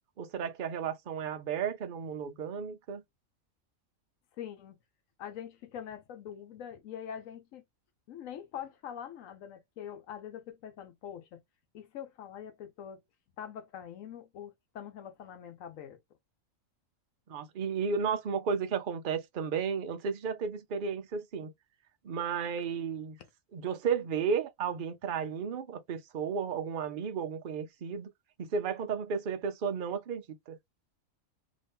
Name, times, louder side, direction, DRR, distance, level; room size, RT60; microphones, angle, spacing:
voice 1, 0.2-3.0 17.3-21.5 22.0-23.2 23.5-28.1 28.4-30.6, right 6 dB, 50° right, 0.7 m, -33 dB
voice 2, 4.4-4.8 5.2-7.6 8.1-11.4 11.7-13.0 13.4-16.0, left 9 dB, 85° left, 1.1 m, -44 dB
2.9 x 2.7 x 3.4 m
omnidirectional pair, 1.4 m